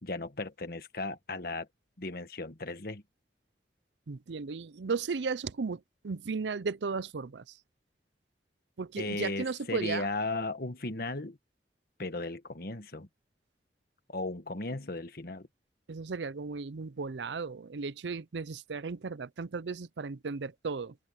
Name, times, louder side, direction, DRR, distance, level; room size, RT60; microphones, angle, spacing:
voice 1, 0.0-1.7 2.0-3.0 9.0-11.4 12.0-13.1 14.1-15.5, left 2 dB, 55° left, 1.7 m, -36 dB
voice 2, 4.1-7.6 8.8-10.1 15.9-21.0, right 4 dB, 85° right, 0.6 m, -35 dB
open air
head